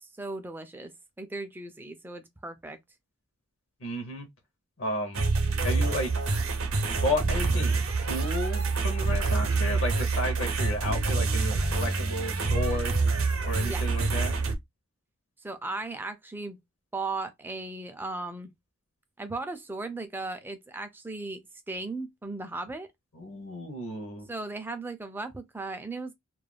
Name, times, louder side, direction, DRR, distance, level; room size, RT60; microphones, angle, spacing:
voice 1, 0.0-0.9 1.2-2.8 13.5-13.8 15.4-16.6 16.9-18.5 19.2-21.4 21.7-22.9 24.3-26.1, right 3 dB, 10° right, 0.3 m, -36 dB
voice 2, 3.8-4.3 4.8-5.2 5.6-6.1 6.9-7.8 8.1-12.9 13.4-14.4 23.1-24.3, left 1 dB, 60° left, 0.7 m, -32 dB
sound 1, 5.1-14.5, right 3 dB, 65° right, 0.6 m, -26 dB
2.3 x 2.2 x 3.2 m
head